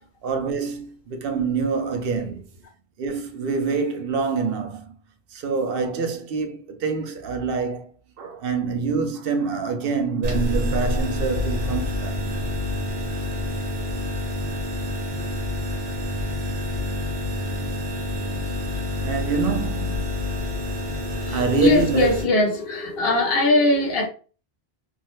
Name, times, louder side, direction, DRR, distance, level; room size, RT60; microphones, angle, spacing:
voice 1, 0.2-2.4 3.0-4.9 5.3-7.9 8.2-12.2 19.0-20.3 21.3-22.1, right 5 dB, 65° right, 0.7 m, -26 dB
sound 1, 10.2-22.2, left 1 dB, 85° right, 1.1 m, -27 dB
voice 2, 21.1-24.1, left 2 dB, 70° left, 0.9 m, -21 dB
2.7 x 2.1 x 2.9 m
omnidirectional pair, 1.1 m